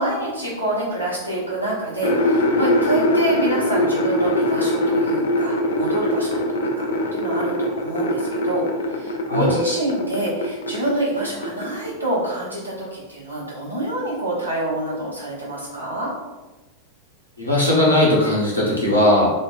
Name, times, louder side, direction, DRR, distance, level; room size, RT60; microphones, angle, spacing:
voice 1, 0.0-16.1, right 1 dB, 85° right, -7 dB, 0.9 m, -27 dB
sound 1, 2.0-10.9 11.2-11.9, left 1 dB, 65° left, 0.3 m, -22 dB
voice 2, 17.4-19.3, left 1 dB, 85° left, -6 dB, 0.7 m, -18 dB
2.5 x 2.1 x 2.3 m, 1.1 s
figure-of-eight pair, 90°, 0 cm